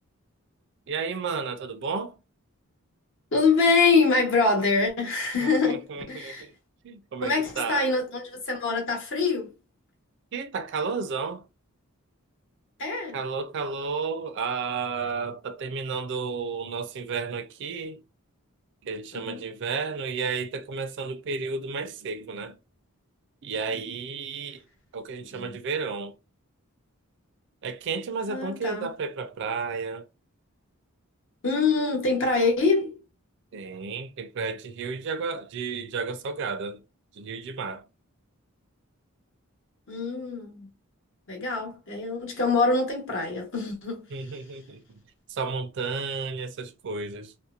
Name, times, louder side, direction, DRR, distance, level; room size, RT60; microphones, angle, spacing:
voice 1, 0.9-2.2 5.4-6.5 6.8-7.9 10.3-11.4 13.1-18.0 18.8-22.6 23.4-24.6 24.9-26.2 27.6-30.1 33.5-36.8 37.2-37.8 44.1-45.0 45.3-47.3, right 5 dB, 55° right, 0.4 m, -32 dB
voice 2, 3.3-6.5 7.2-9.5 12.8-13.2 19.1-19.4 25.2-25.5 28.3-28.9 31.4-33.0 39.9-40.7 41.3-44.4, left 4 dB, 60° left, 1.0 m, -25 dB
2.7 x 2.1 x 2.4 m
head